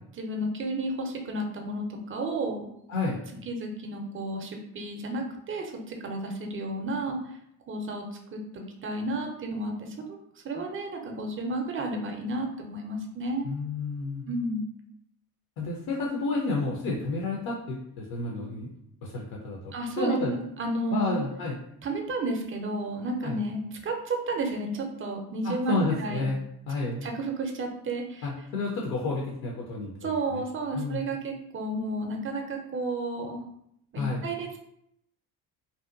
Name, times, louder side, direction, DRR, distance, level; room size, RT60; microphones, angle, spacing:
voice 1, 0.2-2.7 3.5-7.2 7.7-8.0 8.3-10.2 10.4-13.5 14.3-14.7 19.7-21.2 21.8-26.3 27.0-28.3 30.0-33.4 33.9-34.6, right 2 dB, 30° right, 3 dB, 0.6 m, -32 dB
voice 2, 2.9-3.2 13.4-14.2 15.6-18.7 19.0-20.3 20.9-21.6 23.2-23.4 25.4-26.4 26.7-27.0 28.2-30.4 30.7-31.0 34.0-34.2, left 3 dB, 50° left, -2 dB, 0.7 m, -30 dB
2.7 x 2.1 x 2.4 m, 0.74 s
hypercardioid pair, 55°, 45 cm